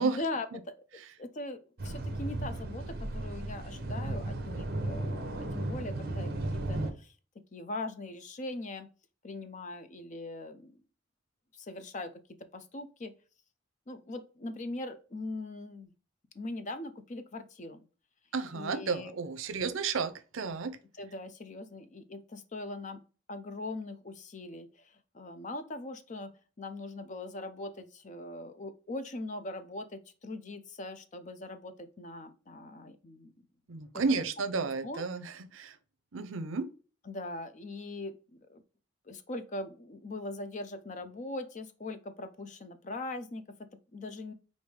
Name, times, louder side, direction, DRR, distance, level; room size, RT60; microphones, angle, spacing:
voice 1, 0.0-7.2 7.5-8.9 9.2-10.8 11.5-12.2 12.5-13.1 13.9-15.9 16.3-17.9 18.5-19.1 21.0-23.0 23.3-26.3 26.6-33.3 33.9-34.2 34.6-35.0 37.1-38.6 39.1-44.3, left 2 dB, 40° left, 0.5 m, -41 dB
sound 1, 1.8-6.9, right 1 dB, 50° right, 0.8 m, -35 dB
voice 2, 18.3-20.8 33.7-35.8 36.1-36.7, right 4 dB, 85° right, 0.6 m, -32 dB
5.2 x 2.6 x 3.2 m
head